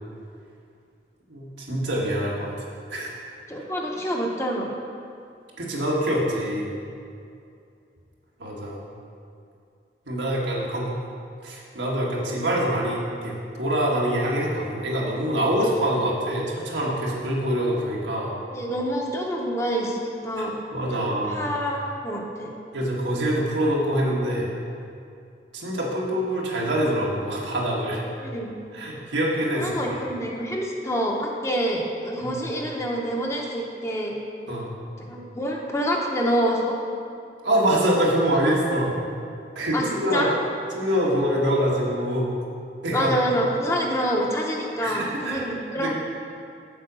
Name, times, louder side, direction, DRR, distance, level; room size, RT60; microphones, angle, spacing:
voice 1, 1.3-2.6 2.9-3.1 5.6-6.7 8.4-8.8 10.1-10.9 11.4-13.3 13.6-18.3 20.3-20.5 20.7-21.5 22.7-24.5 25.5-28.0 28.7-29.8 32.2-32.4 34.5-34.7 37.4-38.9 39.5-40.3 40.7-42.3 42.8-43.3 44.8-45.5 45.8-45.9, equal, 90° right, -4 dB, 1.7 m, -25 dB
voice 2, 3.5-4.7 18.5-20.6 20.9-22.5 28.2-28.6 29.5-34.2 35.0-36.8 39.7-40.3 42.9-45.9, equal, 15° left, -1 dB, 0.8 m, -27 dB
7.7 x 5.1 x 6.9 m, 2.5 s
head